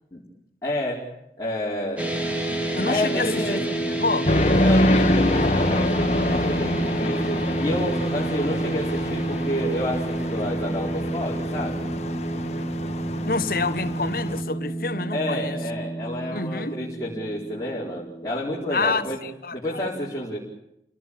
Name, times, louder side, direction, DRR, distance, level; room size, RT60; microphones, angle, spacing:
voice 1, 0.6-1.1 1.4-2.1 2.8-3.8 4.6-11.8 15.1-19.2 19.5-20.4, equal, 20° left, 4.6 m, -29 dB
sound 1, 2.0-18.3, right 1 dB, 10° right, 3.2 m, -29 dB
voice 2, 2.7-3.6 3.9-4.3 13.2-15.6 16.3-16.8 18.7-19.8, left 3 dB, 55° left, 1.4 m, -27 dB
sound 2, 4.3-14.4, left 1 dB, 40° left, 1.6 m, -25 dB
29.5 x 18.5 x 8.7 m
head